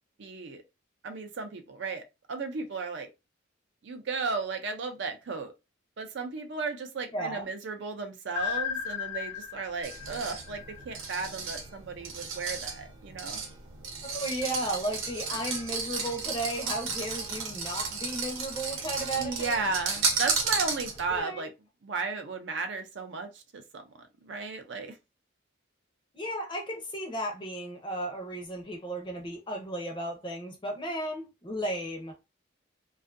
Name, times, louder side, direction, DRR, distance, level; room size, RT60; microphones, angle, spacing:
voice 1, 0.2-0.6 1.0-3.1 3.8-5.5 6.0-13.4 19.2-21.5 21.8-25.0, right 4 dB, 60° right, 0.4 m, -35 dB
voice 2, 7.1-7.5 14.0-19.7 21.1-21.5 26.1-32.3, right 1 dB, 25° left, 0.6 m, -34 dB
sound 1, 8.4-11.3, left 8 dB, 85° left, 0.4 m, -35 dB
sound 2, 9.8-21.2, right 4 dB, 90° right, 0.8 m, -34 dB
2.5 x 2.3 x 2.5 m
head